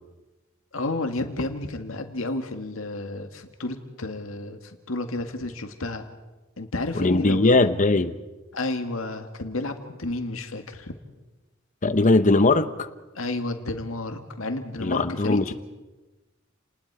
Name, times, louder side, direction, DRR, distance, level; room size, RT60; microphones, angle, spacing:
voice 1, 0.7-6.0 6.6-7.7 8.5-10.9 13.1-15.5, left 2 dB, 90° left, 5 dB, 2.0 m, -31 dB
voice 2, 6.9-8.2 11.8-12.9 14.8-15.5, left 2 dB, 40° left, 11 dB, 0.9 m, -20 dB
30.0 x 20.0 x 4.9 m, 1.2 s
head